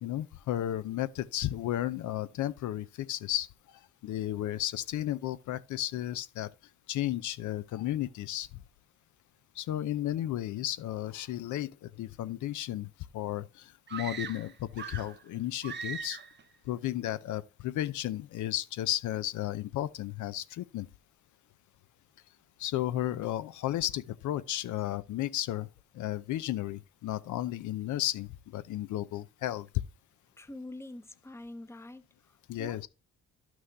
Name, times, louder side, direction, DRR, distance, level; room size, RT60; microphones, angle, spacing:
voice 1, 0.0-3.5 4.0-6.5 6.9-8.5 9.6-12.9 13.1-16.2 16.7-20.9 22.6-25.7 25.9-29.7 32.5-32.9, left 13 dB, 75° left, 0.6 m, -33 dB
sound 1, 13.9-15.2 15.6-16.4, right 6 dB, 35° right, 0.7 m, -40 dB
voice 2, 30.4-32.9, left 1 dB, 10° left, 0.8 m, -46 dB
11.0 x 6.2 x 3.3 m
cardioid pair, 90°, 30 cm